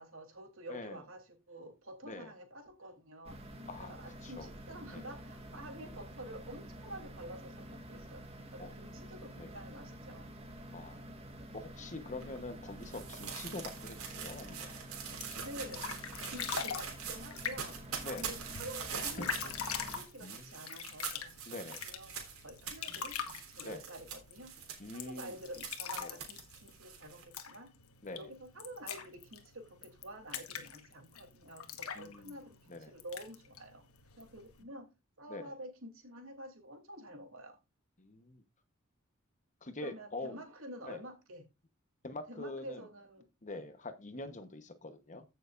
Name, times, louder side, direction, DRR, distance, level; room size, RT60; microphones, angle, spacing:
voice 1, 0.0-10.3 15.4-15.8 16.3-17.8 18.1-22.1 22.4-23.2 23.5-24.6 24.9-27.7 28.1-33.8 34.2-34.9 35.2-37.6 39.8-41.5 42.3-43.7, right 1 dB, 65° right, 3.0 m, -49 dB
voice 2, 0.7-1.0 2.0-2.3 3.7-3.9 4.2-4.5 4.9-5.1 8.6-8.8 9.4-9.5 10.7-14.8 18.0-18.3 19.2-19.3 20.2-20.6 21.5-21.8 23.6-23.9 24.8-25.4 26.0-26.2 28.0-28.3 31.9-32.3 32.7-32.9 35.3-35.5 38.0-38.4 39.6-40.4 40.8-41.0 42.0-42.8 43.4-45.2, left 2 dB, 35° left, 1.1 m, -44 dB
sound 1, 3.2-20.0, equal, 30° right, 1.9 m, -49 dB
sound 2, 12.2-27.2, right 7 dB, 85° right, 3.4 m, -44 dB
sound 3, 15.0-34.6, left 7 dB, 85° left, 1.4 m, -44 dB
15.0 x 6.7 x 2.5 m
head